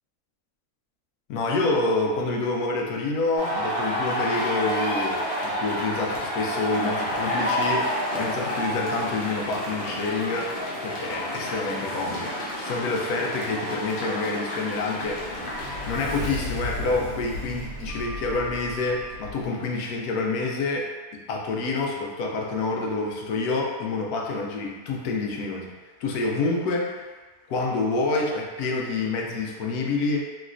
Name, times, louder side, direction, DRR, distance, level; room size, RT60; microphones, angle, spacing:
voice 1, 1.3-12.3 12.6-15.5 15.9-20.9 21.3-25.7 26.0-27.1 27.5-30.2, left 3 dB, 80° left, -1 dB, 1.1 m, -27 dB
sound 1, 3.4-16.2, equal, 60° left, 0.6 m, -29 dB
Sliding door, 14.8-19.5, left 1 dB, 75° right, 1.1 m, -35 dB
3.1 x 2.9 x 2.4 m, 1.3 s
omnidirectional pair, 1.6 m